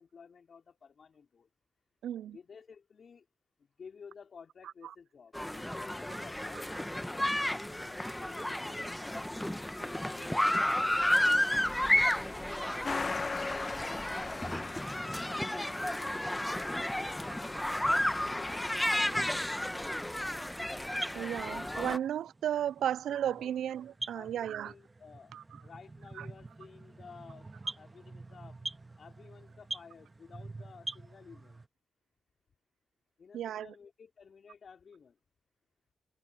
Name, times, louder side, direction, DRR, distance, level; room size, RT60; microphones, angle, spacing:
voice 1, 0.0-1.5 2.3-3.3 3.6-9.4 9.8-15.5 15.9-19.8 22.8-22.9 23.2-23.5 24.1-25.3 25.6-27.5 27.7-28.6 29.0-31.6 33.2-35.2, left 6 dB, 60° left, 3.5 m, -54 dB
voice 2, 2.0-2.4 21.1-24.7 25.3-25.4 26.2-26.3 33.3-33.7, right 10 dB, 85° right, 0.3 m, -34 dB
sound 1, 5.3-22.0, left 1 dB, 10° left, 1.1 m, -32 dB
Truck, 12.8-19.0, left 4 dB, 40° left, 1.1 m, -40 dB
sound 2, 20.7-31.7, right 2 dB, 30° right, 1.5 m, -45 dB
supercardioid pair, 55°, 0 cm